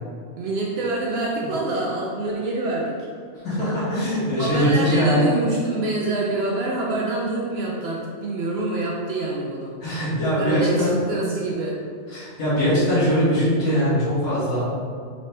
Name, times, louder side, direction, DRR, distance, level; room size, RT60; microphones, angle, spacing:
voice 1, 0.4-3.1 4.4-9.8 10.4-11.8, right 2 dB, 65° right, -3 dB, 0.7 m, -26 dB
voice 2, 3.4-5.3 9.8-11.0 12.1-14.6, equal, 85° left, -10 dB, 1.6 m, -21 dB
4.2 x 2.7 x 3.3 m, 2.2 s
omnidirectional pair, 1.4 m